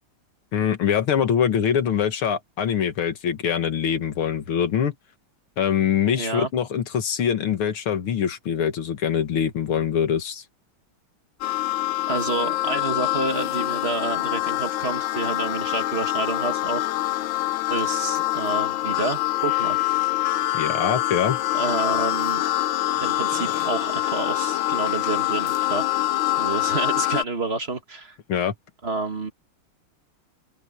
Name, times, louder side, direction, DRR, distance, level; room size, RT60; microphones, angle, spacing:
voice 1, 0.5-4.9 5.6-10.4 20.5-21.4 28.3-28.5, left 8 dB, 90° left, 2.5 m, -23 dB
voice 2, 6.1-6.5 11.4-11.5 12.1-17.2 17.7-19.8 21.5-22.4 23.0-25.9 26.4-28.2 28.8-29.3, right 3 dB, 30° right, 1.7 m, -29 dB
sound 1, 11.4-27.2, left 16 dB, 75° left, 1.3 m, -25 dB
omnidirectional pair, 2.3 m